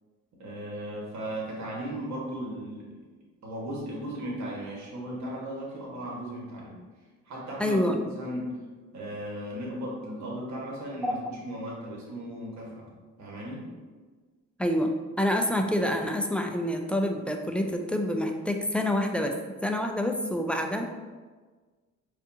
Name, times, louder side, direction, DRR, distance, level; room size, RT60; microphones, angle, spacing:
voice 1, 0.3-3.0 3.4-6.8 7.2-8.6 8.9-12.9 13.2-13.6, equal, 65° right, -3 dB, 1.4 m, -36 dB
voice 2, 7.6-7.9 11.0-11.2 14.6-14.9 15.2-19.4 19.6-20.8, left 1 dB, 5° left, 3 dB, 0.3 m, -27 dB
5.0 x 2.5 x 2.7 m, 1.4 s
cardioid pair, 90°, 30 cm